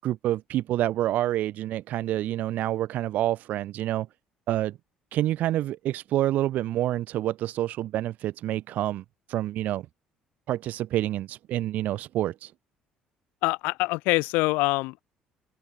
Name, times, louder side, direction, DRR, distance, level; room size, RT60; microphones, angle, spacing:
voice 1, 0.0-4.1 4.5-4.8 5.1-9.9 10.5-12.5, right 13 dB, 65° right, 1.0 m, -28 dB
voice 2, 13.4-15.0, left 23 dB, 85° left, 2.5 m, -25 dB
open air
supercardioid pair, 80°, 3 cm